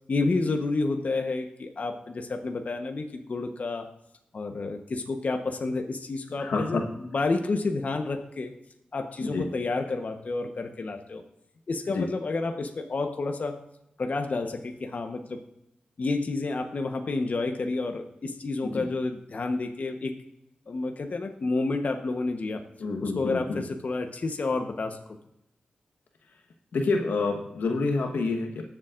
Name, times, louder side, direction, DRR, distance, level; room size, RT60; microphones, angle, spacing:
voice 1, 0.1-3.9 4.3-8.5 8.9-11.2 11.7-13.6 14.0-15.4 16.0-20.1 20.7-22.6 23.0-25.2, left 3 dB, 60° left, 4 dB, 1.0 m, -30 dB
voice 2, 6.4-6.8 9.2-9.4 11.9-12.1 18.6-18.8 22.8-23.6 26.7-28.6, left 3 dB, 85° left, 3 dB, 1.2 m, -28 dB
20.0 x 7.2 x 2.5 m, 0.85 s
cardioid pair, 60°, 3 cm